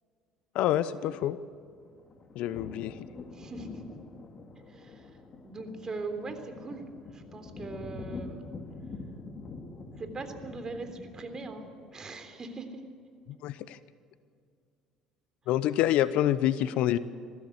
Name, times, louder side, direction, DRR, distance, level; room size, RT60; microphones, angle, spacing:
voice 1, 0.5-1.4 2.4-2.9 13.4-13.8 15.5-17.0, left 12 dB, 65° left, 16 dB, 0.8 m, -27 dB
sound 1, 1.5-11.9, left 3 dB, 40° left, 2.6 m, -45 dB
voice 2, 3.3-3.9 4.7-5.2 5.4-6.8 7.1-8.3 10.0-12.8, right 3 dB, 30° right, 7 dB, 3.5 m, -40 dB
21.0 x 15.5 x 8.1 m, 2.3 s
hypercardioid pair, 70°, 2 cm